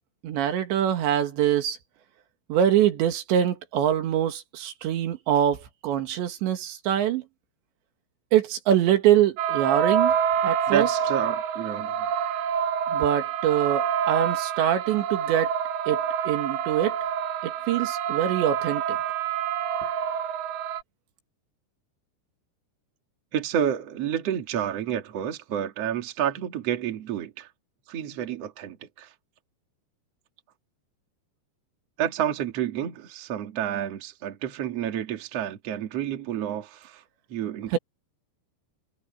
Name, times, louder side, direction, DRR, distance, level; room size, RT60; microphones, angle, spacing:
voice 1, 0.2-1.8 2.5-7.2 8.3-10.1 10.4-10.9 12.9-15.5 15.9-16.9 17.4-19.0 37.7-37.8, right 10 dB, 85° right, 4.2 m, -24 dB
sound 1, 9.4-20.8, right 8 dB, 65° right, 2.4 m, -27 dB
voice 2, 10.7-12.1 23.3-27.5 27.9-29.1 32.0-37.0 37.3-37.8, right 10 dB, 45° right, 2.5 m, -29 dB
omnidirectional pair, 5.0 m